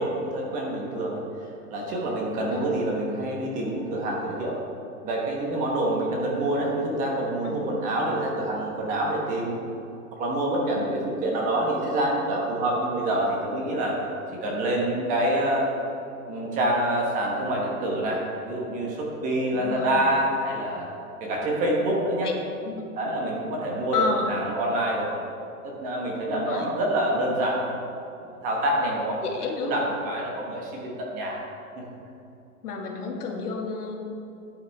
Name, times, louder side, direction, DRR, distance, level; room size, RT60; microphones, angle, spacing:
voice 1, 0.0-4.6 5.0-9.5 10.2-14.1 14.4-15.7 16.3-20.9 21.2-22.3 23.0-25.1 25.6-27.6 28.2-29.2 29.6-31.4 31.8-31.9, right 1 dB, 15° right, -2 dB, 1.2 m, -26 dB
voice 2, 19.5-20.0 22.2-22.3 22.6-22.8 23.9-24.3 26.3-26.7 29.2-29.7 32.6-34.0, left 4 dB, 80° left, 1 dB, 2.0 m, -30 dB
14.0 x 9.2 x 3.5 m, 2.8 s
hypercardioid pair, 165°, 45 cm